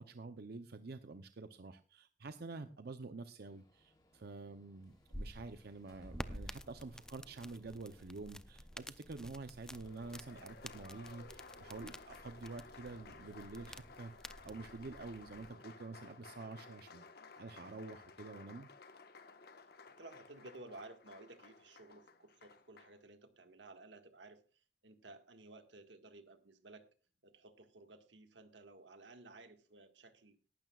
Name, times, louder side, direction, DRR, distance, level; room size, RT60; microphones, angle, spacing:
voice 1, 0.0-17.0 17.4-18.7, right 3 dB, 60° right, 9 dB, 0.7 m, -48 dB
sound 1, 3.4-13.9, left 1 dB, 25° left, 3.2 m, -70 dB
sound 2, 4.9-15.5, equal, 5° left, 0.5 m, -51 dB
Applause, 9.7-23.0, left 4 dB, 60° left, 1.3 m, -56 dB
voice 2, 20.0-26.9 27.2-30.4, right 2 dB, 85° right, 7 dB, 1.7 m, -56 dB
18.0 x 12.0 x 2.4 m, 0.35 s
head